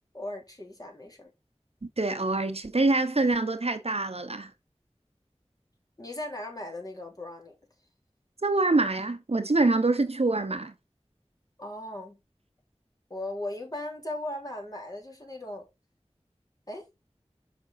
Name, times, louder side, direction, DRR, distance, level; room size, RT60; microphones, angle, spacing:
voice 1, 0.1-1.3 6.0-7.5 11.6-12.2 13.1-15.7 16.7-16.9, left 1 dB, 35° left, 3.4 m, -37 dB
voice 2, 1.8-4.5 8.4-10.7, right 2 dB, 65° right, 0.9 m, -25 dB
6.1 x 6.0 x 4.1 m
wide cardioid pair, 45°, 11 cm